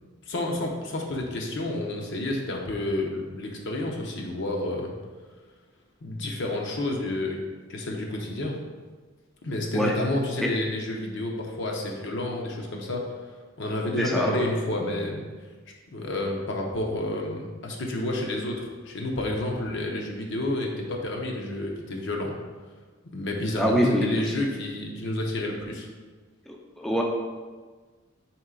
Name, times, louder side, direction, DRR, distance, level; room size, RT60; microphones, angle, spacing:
voice 1, 0.3-4.9 6.0-7.4 7.7-8.6 9.4-13.1 13.6-15.2 15.9-22.3 23.1-25.9, left 1 dB, 65° left, 0 dB, 0.7 m, -30 dB
voice 2, 14.0-14.5 23.6-24.3 26.5-27.0, equal, ahead, -1 dB, 0.3 m, -25 dB
4.5 x 3.2 x 3.7 m, 1.4 s
head